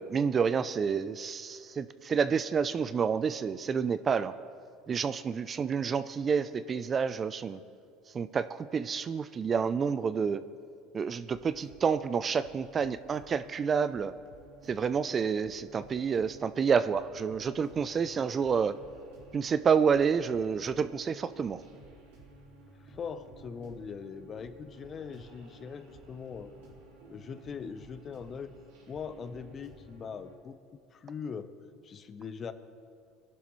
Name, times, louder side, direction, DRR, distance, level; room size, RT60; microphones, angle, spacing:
voice 1, 0.0-4.3 4.9-7.6 8.1-10.4 10.9-14.1 14.7-18.7 19.3-21.6, right 6 dB, 35° right, 14 dB, 0.5 m, -29 dB
sound 1, 11.3-30.4, right 2 dB, 75° right, 3.8 m, -54 dB
voice 2, 22.8-26.5 27.1-28.5 28.9-31.5 31.8-32.5, left 6 dB, 40° left, 11 dB, 0.9 m, -41 dB
22.5 x 11.0 x 3.2 m, 2.3 s
supercardioid pair, 90°, 0 cm